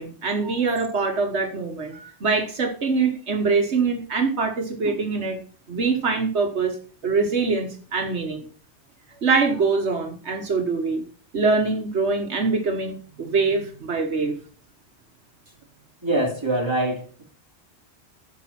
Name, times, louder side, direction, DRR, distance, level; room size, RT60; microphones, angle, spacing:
voice 1, 0.0-5.4 5.7-6.8 7.0-8.4 9.2-11.0 11.3-14.3, right 4 dB, 75° right, 4 dB, 1.6 m, -24 dB
voice 2, 16.0-17.2, right 1 dB, 25° right, 0 dB, 3.4 m, -24 dB
10.5 x 7.1 x 5.8 m, 0.41 s
omnidirectional pair, 1.1 m